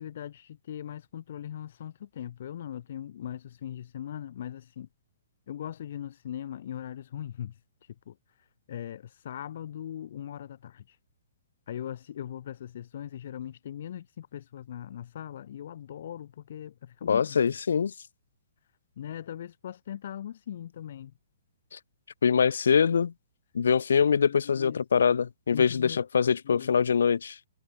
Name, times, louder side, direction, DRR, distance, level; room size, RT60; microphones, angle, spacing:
voice 1, 0.0-4.9 5.5-11.0 11.7-17.6 19.0-21.1 24.3-24.8 25.5-26.0 26.4-26.7, left 10 dB, 60° left, 5.7 m, -40 dB
voice 2, 17.0-17.9 21.7-21.8 22.2-23.1 23.5-27.4, left 6 dB, 80° left, 0.4 m, -24 dB
hypercardioid pair, 145°, 0 cm